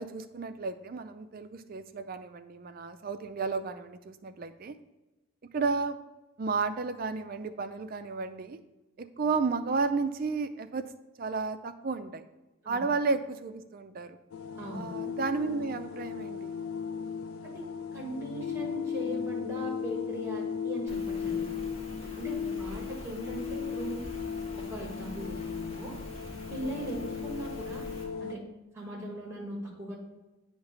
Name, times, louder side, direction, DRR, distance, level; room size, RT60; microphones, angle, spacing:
voice 1, 0.0-4.8 5.5-6.0 6.4-8.6 9.0-10.9 11.2-12.2 12.7-14.2 14.7-16.5 22.4-22.9, right 4 dB, 45° right, 9 dB, 0.4 m, -33 dB
sound 1, 14.3-28.4, left 6 dB, 85° left, 0.4 m, -36 dB
voice 2, 14.6-14.9 17.4-17.6 17.9-21.5 22.2-24.1 24.7-25.9 26.5-27.9 28.2-28.4 28.7-30.0, right 1 dB, 10° right, -2 dB, 1.5 m, -39 dB
Rain, 20.9-28.0, equal, 30° left, 1.8 m, -46 dB
8.4 x 2.9 x 5.5 m, 1.1 s
head